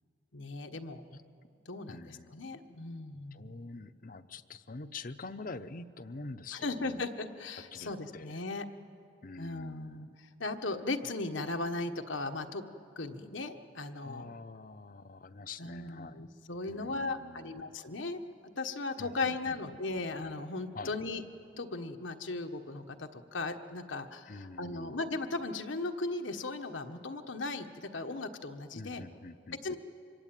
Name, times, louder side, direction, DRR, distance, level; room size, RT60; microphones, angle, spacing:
voice 1, 0.3-1.0 1.6-3.5 6.5-8.6 9.4-10.1 10.4-12.6 13.0-14.2 15.6-18.2 18.6-21.2 21.6-29.0 29.6-29.8, left 3 dB, 85° left, 6 dB, 1.4 m, -37 dB
voice 2, 1.9-2.6 3.3-7.1 7.7-8.4 9.2-10.1 14.0-16.3 16.6-17.7 19.0-19.6 20.7-21.0 24.3-25.0 28.7-29.7, left 3 dB, 45° left, 11 dB, 0.7 m, -46 dB
25.5 x 23.0 x 9.1 m, 2.5 s
head